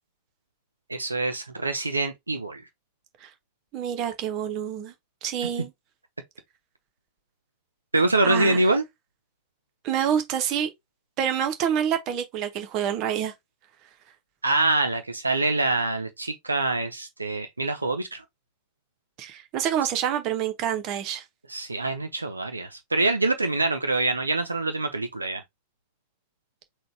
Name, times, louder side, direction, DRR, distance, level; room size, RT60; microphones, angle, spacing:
voice 1, 0.9-2.6 5.4-5.5 7.9-8.8 14.4-18.2 21.5-25.4, right 2 dB, 80° right, 0.5 m, -25 dB
voice 2, 3.7-4.9 5.2-5.7 8.2-8.6 9.8-10.7 11.2-13.3 19.2-21.2, right 9 dB, 40° right, 0.9 m, -27 dB
3.9 x 2.3 x 4.5 m
figure-of-eight pair, 90°, 0 cm